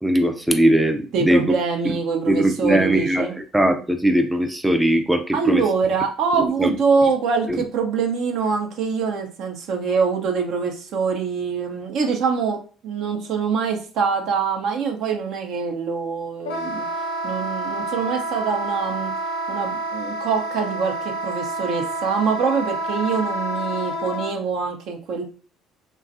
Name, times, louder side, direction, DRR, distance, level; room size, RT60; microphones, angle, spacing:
voice 1, 0.0-1.4 2.3-3.3 3.5-5.6 6.6-6.7, right 1 dB, 5° right, 5 dB, 0.4 m, -19 dB
voice 2, 1.1-3.4 5.3-16.9 17.2-19.2 19.5-25.2, right 5 dB, 65° right, 3 dB, 0.6 m, -24 dB
Wind instrument woodwind instrument, 16.4-24.3, right 2 dB, 80° left, 0.4 m, -28 dB
3.1 x 2.3 x 2.5 m, 0.38 s
hypercardioid pair, 55°, 0 cm